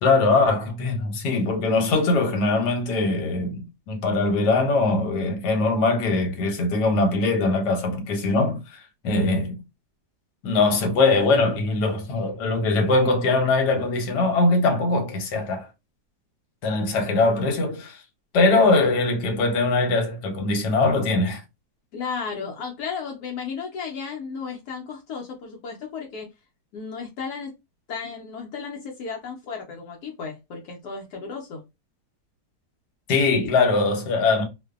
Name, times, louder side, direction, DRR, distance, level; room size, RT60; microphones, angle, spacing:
voice 1, 0.0-9.6 10.4-15.7 16.6-18.0 18.3-21.4 33.1-34.4, left 3 dB, 90° left, 1.3 m, -21 dB
voice 2, 21.9-26.3 26.7-27.5 27.9-31.6, left 5 dB, 75° left, 1.1 m, -34 dB
2.5 x 2.5 x 2.3 m
omnidirectional pair, 1.8 m